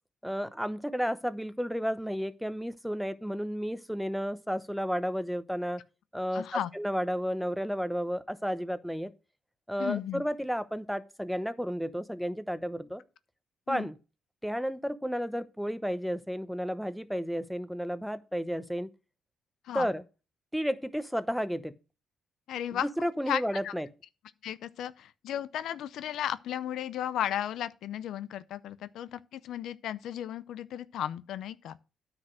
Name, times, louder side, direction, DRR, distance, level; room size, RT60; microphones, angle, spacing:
voice 1, 0.2-5.8 6.1-9.1 9.7-13.0 13.7-14.0 14.4-18.9 19.7-20.0 20.5-21.7 22.8-23.9, equal, ahead, 0.8 m, -32 dB
voice 2, 6.3-6.7 9.8-10.2 13.7-13.9 19.6-19.9 22.5-23.7 24.4-31.8, left 11 dB, 80° left, 0.5 m, -35 dB
9.5 x 4.9 x 6.2 m
cardioid pair, 90°, 0 cm